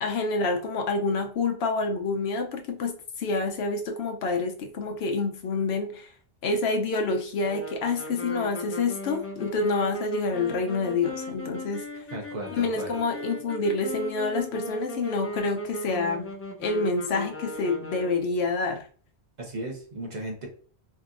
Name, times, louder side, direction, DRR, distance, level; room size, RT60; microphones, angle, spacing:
voice 1, 0.0-6.1 6.4-11.8 12.5-18.8, left 3 dB, 75° left, 0.8 m, -27 dB
sound 1, 7.4-18.4, left 1 dB, 20° left, 0.3 m, -37 dB
voice 2, 12.1-12.9 19.4-20.5, right 1 dB, 45° right, 1.0 m, -35 dB
4.4 x 2.7 x 2.5 m
omnidirectional pair, 1.1 m